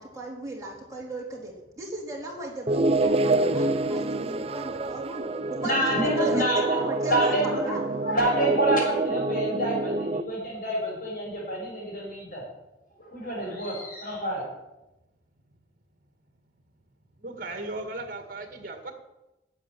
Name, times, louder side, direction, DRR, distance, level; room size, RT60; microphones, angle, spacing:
voice 1, 0.0-7.9, right 1 dB, 20° right, -3 dB, 3.5 m, -37 dB
sound 1, 2.7-10.2, right 2 dB, 35° right, 0.5 m, -26 dB
voice 2, 5.6-12.4 13.0-14.4, right 1 dB, 50° left, -2 dB, 6.1 m, -28 dB
voice 3, 17.2-18.9, right 2 dB, 50° right, 5 dB, 2.2 m, -36 dB
11.5 x 7.9 x 9.4 m, 0.97 s
head